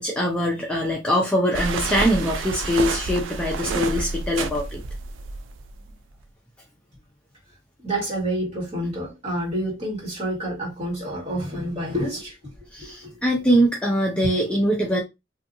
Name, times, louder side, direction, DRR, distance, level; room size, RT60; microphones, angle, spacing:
voice 1, 0.0-4.8 12.7-15.0, equal, 5° left, 0.4 m, -22 dB
sound 1, 1.5-5.9, right 4 dB, 90° right, 0.4 m, -29 dB
voice 2, 7.8-12.4 12.8-13.1 14.2-14.3, right 1 dB, 35° right, 1.8 m, -28 dB
2.7 x 2.4 x 2.6 m
head